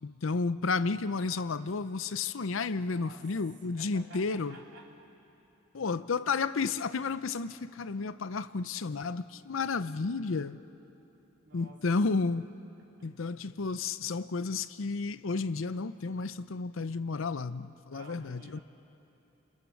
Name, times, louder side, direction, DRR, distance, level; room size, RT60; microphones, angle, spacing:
voice 1, 0.0-4.6 5.7-10.6 11.5-12.5 13.0-18.6, left 4 dB, 75° left, 0.6 m, -32 dB
voice 2, 2.9-3.3 3.6-4.9 11.4-11.9 13.0-13.1 17.9-18.6, right 2 dB, 60° right, 3.3 m, -52 dB
30.0 x 25.0 x 7.2 m
head